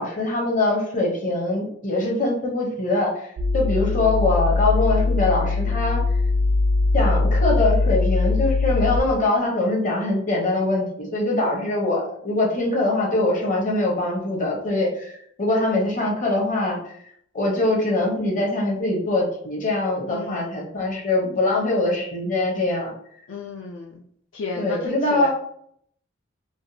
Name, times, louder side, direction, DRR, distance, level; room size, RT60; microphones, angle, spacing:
voice 1, 0.0-3.3 3.5-6.0 6.9-16.8 17.3-22.9 24.6-25.3, left 2 dB, 40° left, -1 dB, 0.9 m, -23 dB
sound 1, 3.4-9.0, left 3 dB, 80° right, 0.4 m, -21 dB
voice 2, 20.1-20.6 23.3-24.0 24.3-25.3, left 4 dB, 65° left, 0 dB, 0.4 m, -34 dB
3.4 x 2.2 x 2.7 m, 0.66 s
head